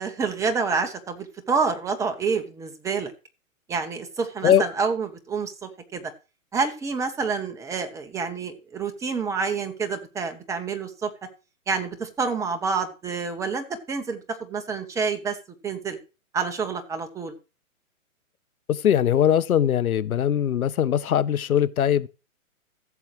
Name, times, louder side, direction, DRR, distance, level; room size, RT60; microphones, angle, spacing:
voice 1, 0.0-3.1 3.7-6.1 6.5-11.1 11.7-15.4 15.6-16.0 16.3-17.3, right 5 dB, 5° right, 0.9 m, -28 dB
voice 2, 18.7-22.1, left 9 dB, 80° left, 0.9 m, -21 dB
15.5 x 7.3 x 3.2 m
hypercardioid pair, 140°, 42 cm